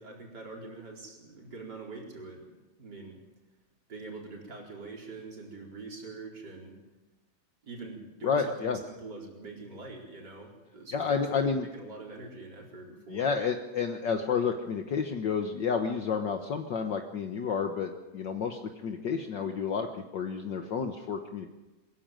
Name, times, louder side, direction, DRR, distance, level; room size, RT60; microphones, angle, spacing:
voice 1, 0.0-3.2 3.9-6.8 7.6-13.3, right 3 dB, 50° right, -1 dB, 4.9 m, -44 dB
voice 2, 8.2-8.8 10.9-11.7 13.1-21.5, left 6 dB, 60° left, 5 dB, 1.7 m, -30 dB
22.5 x 15.5 x 9.1 m, 1.1 s
omnidirectional pair, 2.3 m